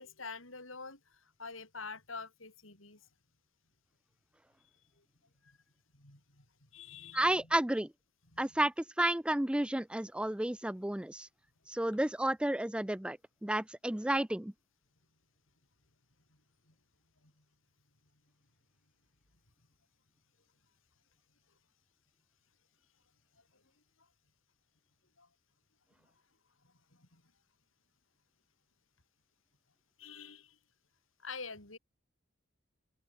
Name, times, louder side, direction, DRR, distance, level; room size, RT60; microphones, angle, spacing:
voice 1, 0.0-3.1 5.0-5.1 5.4-5.6 5.9-7.5 8.3-8.7 16.7-16.8 17.2-17.4 23.4-23.6 24.0-24.1 25.2-25.3 26.6-27.2 30.0-30.6 31.2-31.8, left 4 dB, 70° left, 7.4 m, -48 dB
voice 2, 7.1-7.9 8.4-11.3 11.7-14.5, right 1 dB, 5° right, 0.4 m, -32 dB
open air
head